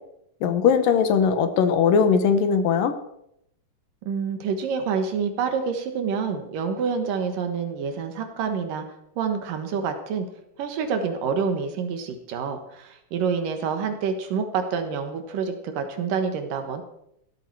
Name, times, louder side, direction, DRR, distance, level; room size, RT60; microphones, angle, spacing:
voice 1, 0.4-2.9, left 6 dB, 70° left, 9 dB, 2.6 m, -20 dB
voice 2, 4.0-8.8 9.2-10.3 10.6-16.8, right 6 dB, 70° right, 7 dB, 2.8 m, -27 dB
16.0 x 13.0 x 4.7 m, 0.76 s
omnidirectional pair, 4.3 m